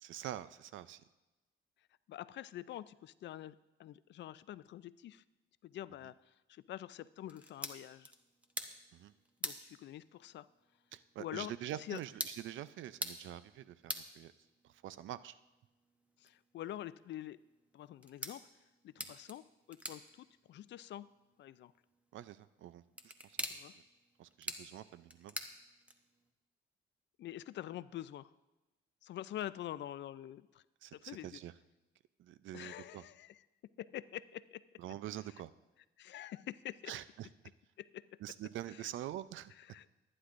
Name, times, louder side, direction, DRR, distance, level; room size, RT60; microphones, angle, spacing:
voice 1, 0.0-1.0 8.9-9.1 10.9-14.3 14.6-15.4 19.1-19.2 22.1-23.5 24.2-25.4 30.8-31.5 32.2-33.0 34.8-35.5 36.9-37.3 38.2-39.5, right 12 dB, 75° right, 16 dB, 0.5 m, -45 dB
voice 2, 2.1-5.2 5.6-8.1 9.4-10.5 11.2-11.5 11.8-12.0 16.2-17.4 17.7-18.4 18.8-19.4 19.7-21.1 21.4-21.7 23.5-23.7 27.2-28.3 29.0-30.6 30.9-31.4 32.5-33.4 33.8-34.6 36.0-36.9 37.8-38.0 39.6-39.9, left 12 dB, 65° left, 16 dB, 0.4 m, -46 dB
sound 1, 7.2-26.3, equal, 5° right, 1.0 m, -48 dB
19.5 x 9.8 x 2.6 m, 1.1 s
cardioid pair, 90°, 20 cm